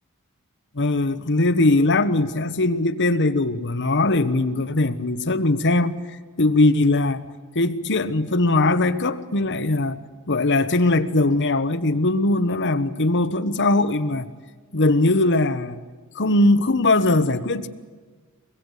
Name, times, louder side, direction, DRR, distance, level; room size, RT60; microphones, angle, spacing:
voice 1, 0.7-7.2 7.5-10.0 10.3-14.3 14.7-15.8 16.1-17.7, left 2 dB, 55° left, 1.2 m, -20 dB
24.5 x 21.5 x 8.4 m
head